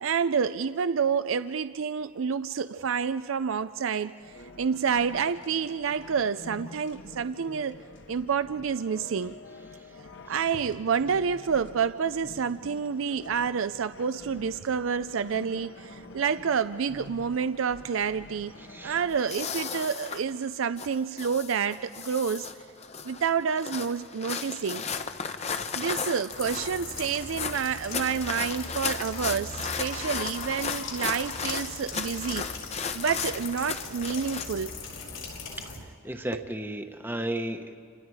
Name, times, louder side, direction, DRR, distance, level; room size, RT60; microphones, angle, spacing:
voice 1, 0.0-4.1 4.6-7.8 8.1-9.3 10.3-18.5 18.8-22.5 23.1-24.8 25.7-32.5 32.9-34.7 36.3-36.4, right 6 dB, 80° right, 13 dB, 0.5 m, -28 dB
sound 1, 4.2-19.2, left 2 dB, 60° left, 1.2 m, -48 dB
voice 2, 18.6-19.0 35.5-37.8, right 1 dB, 10° right, 6 dB, 1.0 m, -34 dB
sound 2, 19.1-34.4, left 5 dB, 35° left, 0.8 m, -35 dB
sound 3, 26.3-35.8, left 4 dB, 85° left, 5.9 m, -39 dB
30.0 x 27.0 x 4.8 m, 2.3 s
head